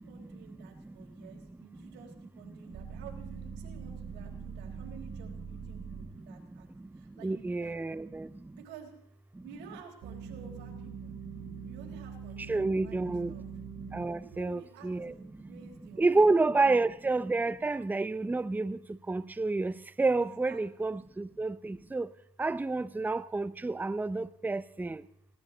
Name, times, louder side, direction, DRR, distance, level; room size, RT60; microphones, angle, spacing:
voice 1, 0.0-6.7 7.0-7.8 8.6-8.9 9.4-11.1 11.6-13.5 14.3-16.2 20.2-20.6 20.9-21.1, right 7 dB, 75° right, 4.2 m, -52 dB
sound 1, 2.7-6.1 10.0-14.1, right 6 dB, 60° right, 5.4 m, -43 dB
voice 2, 7.2-8.3 12.5-13.3 13.9-15.1 16.0-18.8 19.1-22.1 22.4-25.0, right 3 dB, 10° right, 0.5 m, -29 dB
19.5 x 17.5 x 4.0 m
supercardioid pair, 80°, 19 cm